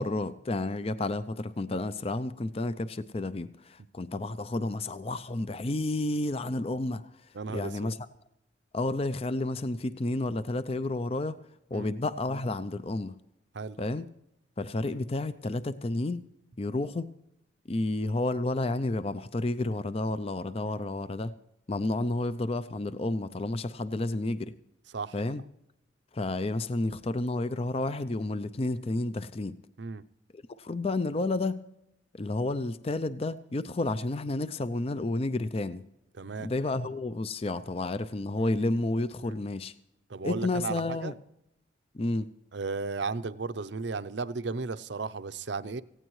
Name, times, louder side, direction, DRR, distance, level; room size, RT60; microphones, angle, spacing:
voice 1, 0.0-8.0 8.7-11.4 11.7-13.2 13.8-14.1 14.6-16.3 16.6-17.1 17.7-21.3 21.7-24.6 25.1-25.4 26.1-29.6 30.3-31.6 32.1-35.9 36.4-39.7 40.2-41.1 41.9-42.3, left 2 dB, 30° left, 13 dB, 0.5 m, -31 dB
voice 2, 7.3-7.9 11.7-11.9 13.5-13.8 24.9-25.1 29.8-30.0 36.2-36.5 39.2-39.4 40.1-41.1 42.5-45.8, right 4 dB, 70° right, 14 dB, 0.6 m, -34 dB
18.0 x 16.0 x 3.1 m, 0.83 s
head